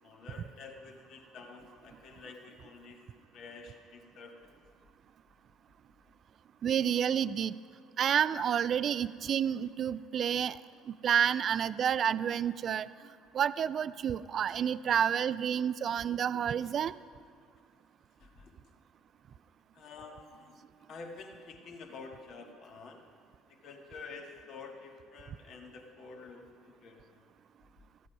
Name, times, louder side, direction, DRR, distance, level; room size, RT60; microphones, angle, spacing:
voice 1, 0.0-3.0 3.3-4.5 8.3-8.5 11.3-11.5 15.2-15.3 16.6-16.8 18.2-18.5 19.7-20.5 20.9-23.0 23.5-27.2, left 4 dB, 60° left, 2 dB, 1.4 m, -49 dB
voice 2, 6.6-7.5 8.0-10.6 10.9-12.9 13.3-16.9, right 8 dB, 50° right, 16 dB, 0.3 m, -29 dB
14.0 x 8.3 x 5.5 m, 2.1 s
hypercardioid pair, 65°, 0 cm